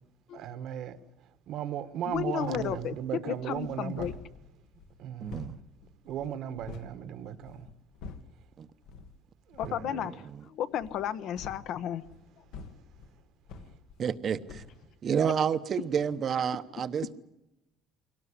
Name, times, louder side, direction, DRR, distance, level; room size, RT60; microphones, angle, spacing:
voice 1, 0.3-1.0 1.5-4.1 5.0-5.6 6.0-7.7 9.5-10.0, right 10 dB, 60° right, 12 dB, 1.4 m, -36 dB
sound 1, 2.1-3.0 3.3-7.0 7.4-8.4 8.8-9.2 9.5-9.9 10.7-14.2 14.5-14.8, left 5 dB, 75° left, 1.8 m, -48 dB
voice 2, 2.1-2.9 3.2-4.1 9.6-12.0, left 10 dB, 60° left, 13 dB, 1.0 m, -33 dB
voice 3, 5.2-5.5 8.6-8.7 9.7-10.0 10.4-10.5 14.0-14.6 15.0-17.1, right 7 dB, 35° right, 13 dB, 0.9 m, -30 dB
23.0 x 18.0 x 10.0 m, 0.91 s
cardioid pair, 150°, 0 cm